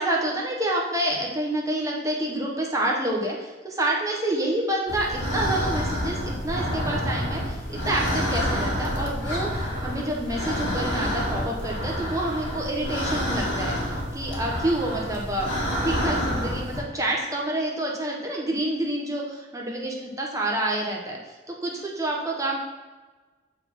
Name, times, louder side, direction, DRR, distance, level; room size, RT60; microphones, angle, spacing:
voice 1, 0.0-15.5 15.8-19.2 19.5-22.6, right 1 dB, 20° right, -1 dB, 0.9 m, -28 dB
sound 1, 4.9-16.8, equal, 75° left, 1.8 m, -28 dB
7.7 x 4.1 x 4.2 m, 1.3 s
head